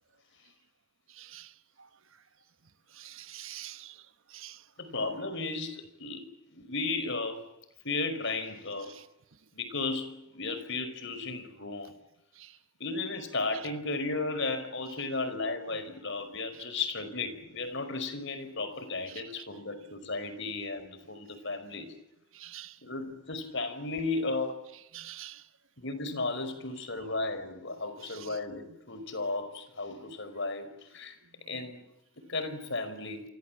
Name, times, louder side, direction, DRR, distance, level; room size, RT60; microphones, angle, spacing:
voice 1, 1.1-1.5 1.8-1.9 2.9-4.0 4.3-4.6 4.9-5.0 8.9-9.0 12.4-12.6 16.5-16.6 19.1-19.4 22.3-22.8 24.9-25.4 28.0-28.4, right 13 dB, 65° right, 1.3 m, -46 dB
voice 2, 4.8-7.4 7.8-8.9 9.5-11.9 12.8-21.9 22.8-24.6 25.8-31.2 31.5-31.8 32.3-33.2, left 3 dB, 55° left, 5.1 m, -34 dB
29.5 x 25.0 x 7.5 m
head